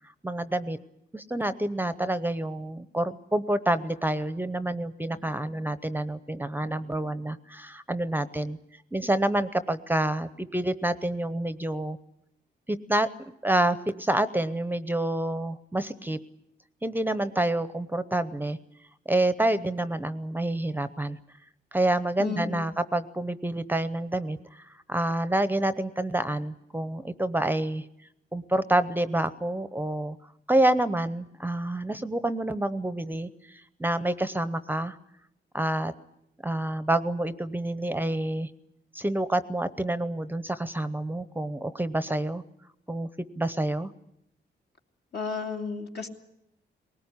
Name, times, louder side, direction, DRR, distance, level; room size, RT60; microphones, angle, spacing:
voice 1, 0.2-0.8 1.1-8.6 8.9-12.0 12.7-13.1 13.4-16.2 16.8-18.6 19.1-21.2 21.7-24.6 24.9-27.8 28.3-30.2 30.5-35.0 35.5-35.9 36.4-38.5 38.9-42.4 42.9-43.1 43.4-43.9, right 1 dB, 10° right, 13 dB, 0.8 m, -28 dB
voice 2, 22.2-22.7 45.1-46.1, left 5 dB, 60° left, 2 dB, 2.7 m, -33 dB
20.5 x 19.0 x 9.8 m, 0.80 s
cardioid pair, 100°, 19 cm